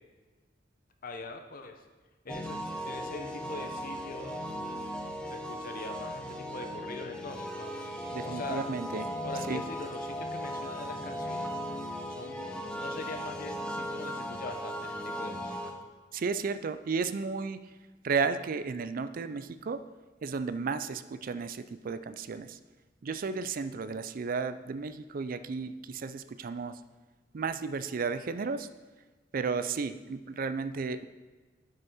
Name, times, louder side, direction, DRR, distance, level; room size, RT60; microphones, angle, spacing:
voice 1, 1.0-1.7 2.2-4.6 5.2-7.7 8.2-8.6 9.2-11.6 12.1-15.7, left 2 dB, 50° left, 5 dB, 0.9 m, -43 dB
sound 1, 2.3-15.7, equal, 5° left, 0.8 m, -37 dB
voice 2, 8.1-9.1 9.5-9.6 16.1-17.6 18.0-19.8 20.2-22.6 23.0-26.8 27.3-28.7 29.3-31.1, right 5 dB, 50° right, 13 dB, 0.4 m, -33 dB
7.8 x 5.4 x 5.6 m, 1.3 s
head